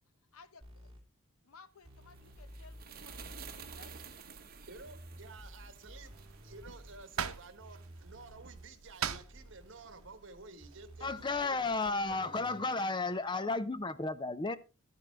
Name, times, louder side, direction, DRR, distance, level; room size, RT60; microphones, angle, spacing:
voice 1, 0.3-0.9 1.4-4.0 12.8-13.4, left 5 dB, 85° left, 0.9 m, -59 dB
sound 1, 0.6-1.0 1.8-2.8 3.1-4.0 4.8-7.0 7.6-8.7 9.1-10.1 10.6-12.6, right 1 dB, 25° right, 3.5 m, -53 dB
sound 2, 1.9-8.5, right 6 dB, 45° right, 1.2 m, -52 dB
voice 2, 4.6-6.1 6.4-12.8 13.4-13.6, right 3 dB, 60° right, 1.4 m, -52 dB
minced meat preparation, 6.0-11.4, right 7 dB, 85° right, 0.8 m, -43 dB
voice 3, 11.0-14.6, left 3 dB, 20° left, 0.4 m, -33 dB
12.0 x 10.0 x 3.4 m
head